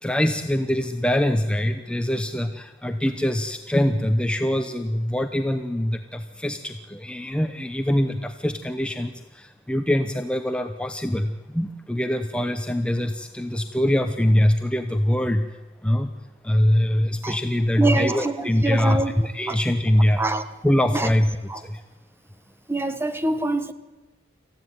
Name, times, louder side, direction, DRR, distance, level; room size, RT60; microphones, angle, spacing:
voice 1, 0.0-15.5 15.8-16.1 16.4-20.2 20.6-21.8, left 1 dB, 5° left, 0.8 m, -23 dB
voice 2, 17.8-19.6 20.2-20.4 20.9-21.1 21.5-21.6 22.7-23.7, right 2 dB, 10° right, 1.2 m, -25 dB
27.0 x 15.5 x 9.6 m
head